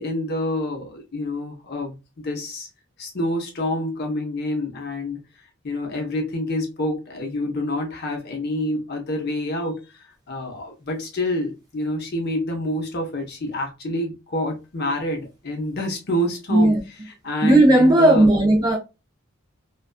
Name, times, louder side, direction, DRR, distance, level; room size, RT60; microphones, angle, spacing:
voice 1, 0.0-2.7 3.0-5.2 5.6-18.3, left 1 dB, 50° left, 0.6 m, -27 dB
voice 2, 17.4-18.8, right 1 dB, 20° right, 0.4 m, -15 dB
2.3 x 2.3 x 2.4 m
head